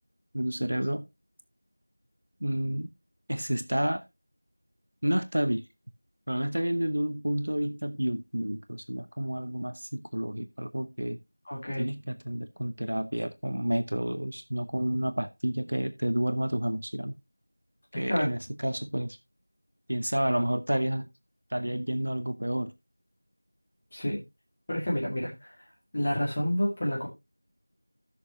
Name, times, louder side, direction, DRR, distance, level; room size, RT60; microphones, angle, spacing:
voice 1, 0.3-1.1 2.4-2.9 3.3-4.0 5.0-5.6 6.3-11.2 11.8-17.2 18.0-19.2 19.9-21.1 21.5-22.7, right 1 dB, 50° right, 0.8 m, -30 dB
voice 2, 11.5-11.9 17.9-18.3 23.9-24.2 24.7-25.5 25.9-27.1, equal, 15° left, 1.9 m, -29 dB
14.0 x 6.5 x 2.8 m
figure-of-eight pair, 180°, 0 cm